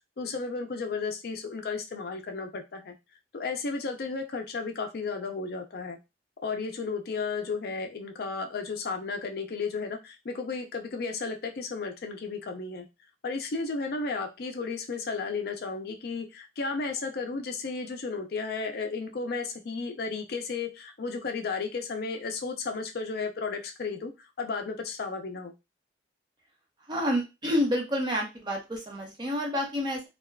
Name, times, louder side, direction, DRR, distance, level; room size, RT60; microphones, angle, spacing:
voice 1, 0.2-2.9 3.3-6.0 6.4-12.9 13.2-25.5, left 4 dB, 55° left, 5 dB, 0.4 m, -33 dB
voice 2, 26.9-30.1, equal, 25° right, 0 dB, 0.8 m, -29 dB
3.4 x 2.3 x 2.2 m, 0.24 s
head